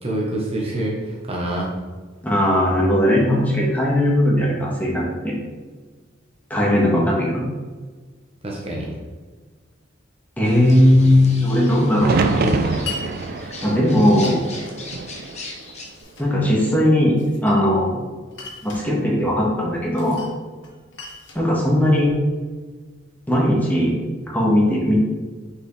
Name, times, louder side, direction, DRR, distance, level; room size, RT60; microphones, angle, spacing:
voice 1, 0.0-1.7 8.4-8.9, right 1 dB, 35° right, -3 dB, 1.0 m, -26 dB
voice 2, 2.2-5.3 6.5-7.4 10.4-12.6 13.6-14.5 16.2-18.0 18.6-20.2 21.3-22.1 23.3-23.9 24.3-24.9, left 1 dB, 10° left, -4 dB, 1.5 m, -18 dB
sound 1, 10.4-16.0, left 1 dB, 35° left, 0.9 m, -34 dB
sound 2, 12.0-16.0 16.4-17.2 19.0-19.5, right 3 dB, 50° right, 0.4 m, -26 dB
Glass, 12.9-13.1 14.2-14.8 15.6-16.3 17.2-17.9 18.3-18.9 19.9-20.4 20.6-22.3, left 4 dB, 75° left, 1.3 m, -38 dB
6.1 x 4.8 x 3.2 m, 1.4 s
head